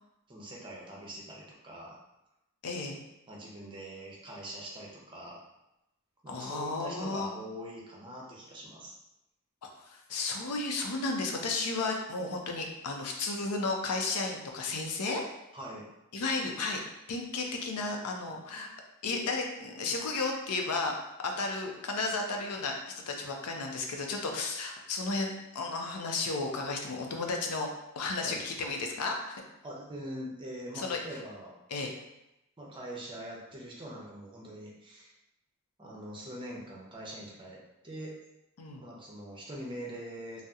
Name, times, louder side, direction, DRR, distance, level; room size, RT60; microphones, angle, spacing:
voice 1, 0.3-2.0 3.3-5.4 6.2-8.9 15.5-15.9 28.2-28.4 29.6-31.6 32.6-35.1 35.8-38.1 38.8-40.4, right 1 dB, 20° right, -3 dB, 0.6 m, -43 dB
voice 2, 2.6-3.0 6.3-7.3 9.6-15.2 16.1-16.8 17.1-18.7 19.0-20.9 21.2-27.7 28.0-29.4 30.7-31.0 31.7-31.9 38.6-38.8, left 3 dB, 85° left, 2 dB, 0.5 m, -33 dB
2.7 x 2.0 x 3.5 m, 0.89 s
head